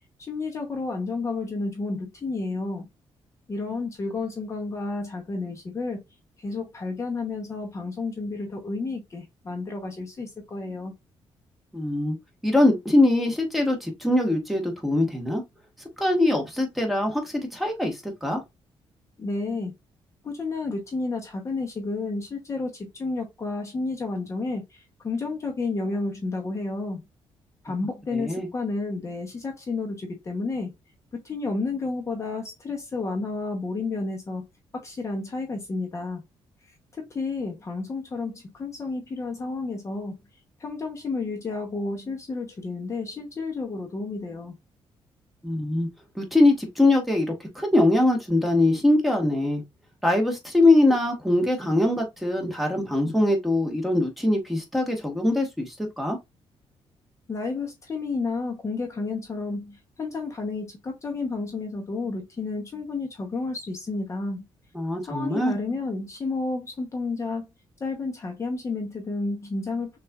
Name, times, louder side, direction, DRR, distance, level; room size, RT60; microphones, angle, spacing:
voice 1, 0.2-2.8 3.5-6.0 6.4-10.9 19.2-19.7 20.2-27.0 27.6-30.7 31.1-34.4 34.7-36.2 36.6-40.2 40.6-44.5 57.3-64.4 65.0-67.5 67.8-70.0, left 3 dB, 30° left, 0.8 m, -31 dB
voice 2, 11.7-12.1 12.4-15.4 16.0-18.4 28.1-28.5 45.4-45.9 46.2-49.6 50.0-56.2 64.7-65.5, left 2 dB, ahead, 1.1 m, -22 dB
6.1 x 2.5 x 2.3 m
cardioid pair, 135°, 10 cm